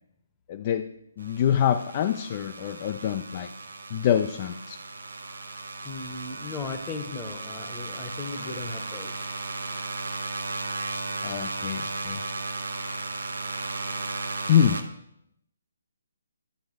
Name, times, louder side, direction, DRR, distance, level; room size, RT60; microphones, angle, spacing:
voice 1, 0.5-0.9 1.2-3.5 3.9-4.8 11.2-12.2 14.5-14.8, left 9 dB, 30° left, 7 dB, 0.4 m, -25 dB
sound 1, 1.2-14.8, right 3 dB, 65° right, 1.0 m, -35 dB
voice 2, 5.8-9.3, left 4 dB, 15° left, 7 dB, 0.9 m, -37 dB
10.5 x 7.0 x 4.6 m, 0.75 s
figure-of-eight pair, 140°, 0 cm